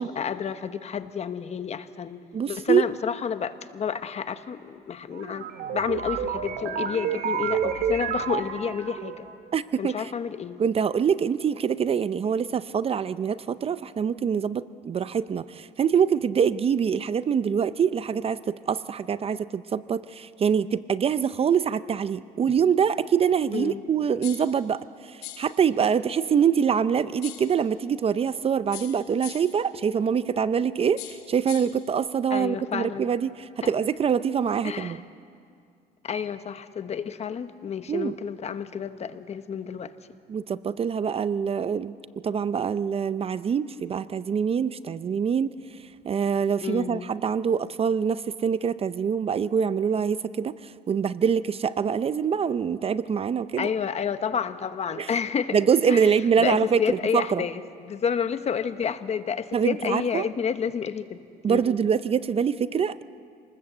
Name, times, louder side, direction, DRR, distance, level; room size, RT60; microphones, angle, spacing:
voice 1, 0.0-2.2 2.5-5.4 5.7-9.3 9.8-10.6 22.4-22.5 23.5-23.8 32.3-33.0 34.6-35.0 36.0-39.9 46.6-47.1 53.6-55.6 55.9-56.1 56.4-61.2 61.5-61.8, left 7 dB, 40° left, 11 dB, 1.0 m, -30 dB
voice 2, 2.3-2.8 9.5-10.1 10.6-35.0 37.9-38.2 40.3-41.9 42.2-45.5 46.0-53.7 55.0-55.1 55.5-57.4 59.5-60.3 61.4-63.0, right 7 dB, 35° right, 15 dB, 0.5 m, -25 dB
sound 1, 5.1-9.3, right 7 dB, 70° right, 1.8 m, -30 dB
sound 2, 24.2-24.6 25.2-25.6 27.2-27.6 28.7-29.6 31.0-31.8, left 11 dB, 70° left, 2.5 m, -41 dB
26.5 x 20.0 x 7.9 m, 2.4 s
cardioid pair, 110°, 17 cm